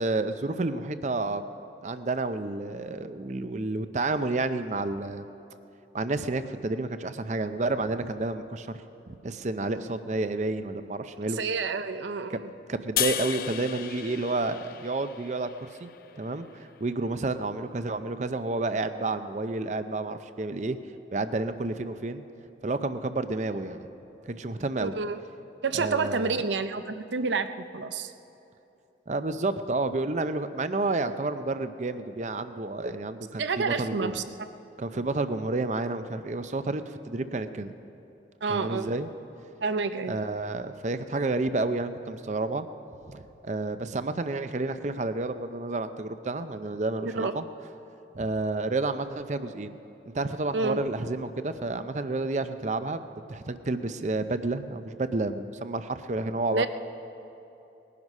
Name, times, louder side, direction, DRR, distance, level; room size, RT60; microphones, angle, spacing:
voice 1, 0.0-1.5 1.8-5.3 5.9-8.8 9.1-11.4 12.3-12.4 12.7-15.9 16.2-20.8 21.1-22.2 22.6-23.9 24.3-24.9 25.7-26.4 29.1-34.2 34.8-37.7 38.5-39.1 40.1-42.7 43.1-47.4 48.1-49.8 50.1-53.0 53.3-56.7, right 2 dB, 40° right, 11 dB, 0.5 m, -30 dB
voice 2, 11.3-12.5 24.8-25.2 25.6-28.1 33.4-34.2 38.4-38.9 39.6-40.2 47.1-47.3 50.5-50.8 56.5-56.7, right 4 dB, 90° right, 10 dB, 0.6 m, -29 dB
sound 1, 13.0-16.2, left 11 dB, 50° left, 0.4 m, -33 dB
19.5 x 11.0 x 5.4 m, 2.9 s
head